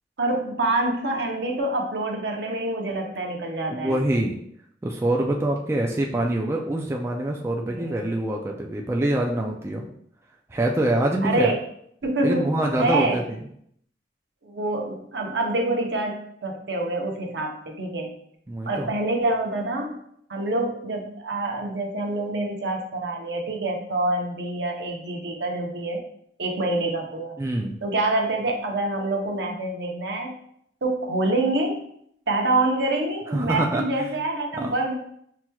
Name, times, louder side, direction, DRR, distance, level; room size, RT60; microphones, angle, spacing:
voice 1, 0.2-4.0 7.6-8.1 11.2-11.6 12.0-13.2 14.4-18.1 18.7-20.0 20.3-26.0 26.4-27.4 27.8-30.3 30.8-31.9 32.3-34.9, right 2 dB, 75° right, 1 dB, 0.7 m, -26 dB
voice 2, 3.7-4.3 4.8-9.8 10.5-11.5 12.2-13.4 18.5-18.9 27.4-27.8 33.3-34.1 34.6-34.7, right 1 dB, 15° right, 0 dB, 0.3 m, -25 dB
5.7 x 3.0 x 2.3 m, 0.69 s
head